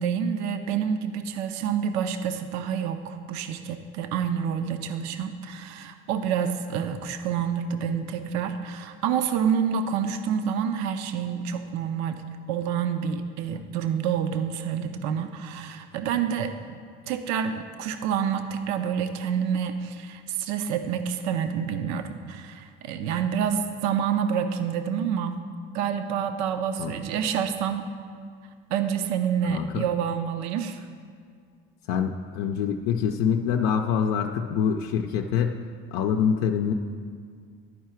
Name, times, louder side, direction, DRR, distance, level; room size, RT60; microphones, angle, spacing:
voice 1, 0.0-12.2 12.5-16.8 17.1-25.4 25.7-27.8 28.7-30.9, right 7 dB, 70° right, 8 dB, 0.6 m, -28 dB
voice 2, 29.5-29.8 31.9-35.5 35.9-36.7, left 7 dB, 80° left, 3 dB, 0.5 m, -25 dB
11.5 x 4.7 x 4.4 m, 2.1 s
supercardioid pair, 90°, 30 cm